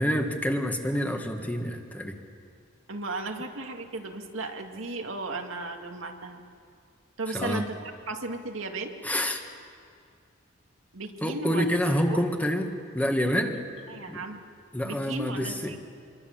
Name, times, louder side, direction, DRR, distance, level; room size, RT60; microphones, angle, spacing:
voice 1, 0.0-2.1 7.3-7.7 9.0-9.4 11.2-13.6 14.1-14.2 14.7-15.7, equal, 10° left, 4 dB, 1.7 m, -27 dB
voice 2, 2.9-6.4 7.2-7.8 8.1-8.9 10.9-11.6 12.1-12.3 13.9-14.4 14.8-15.8, right 2 dB, 90° right, 3 dB, 2.1 m, -35 dB
27.0 x 23.0 x 7.4 m, 2.3 s
head